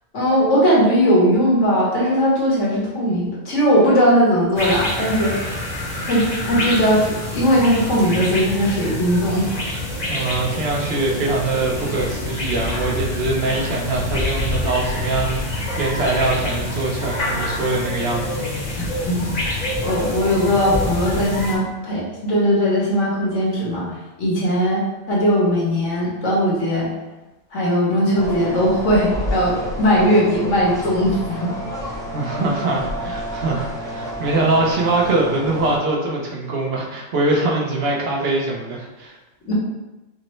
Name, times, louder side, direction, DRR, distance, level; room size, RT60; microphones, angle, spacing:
voice 1, 0.1-5.5 6.1-9.5 19.0-19.3 19.8-23.9 24.2-26.9 27.5-31.5 39.5-39.6, equal, 80° left, -5 dB, 1.5 m, -19 dB
sound 1, 4.6-21.5, left 1 dB, 40° left, 0.8 m, -26 dB
voice 2, 10.1-18.4 32.1-39.2, right 2 dB, 60° right, -1 dB, 0.9 m, -23 dB
sound 2, 28.1-35.8, equal, 5° left, 0.5 m, -30 dB
5.1 x 2.1 x 3.0 m, 1.0 s
omnidirectional pair, 1.2 m